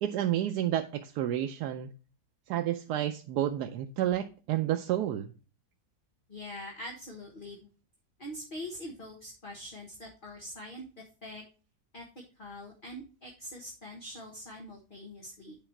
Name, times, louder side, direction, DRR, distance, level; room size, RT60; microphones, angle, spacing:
voice 1, 0.0-1.9 2.5-5.3, right 12 dB, 90° right, 6 dB, 1.2 m, -30 dB
voice 2, 6.3-7.7 8.2-10.8 11.2-11.4 11.9-12.0 12.4-15.6, left 1 dB, 35° left, 0 dB, 1.4 m, -43 dB
9.0 x 4.8 x 4.4 m, 0.36 s
omnidirectional pair, 1.7 m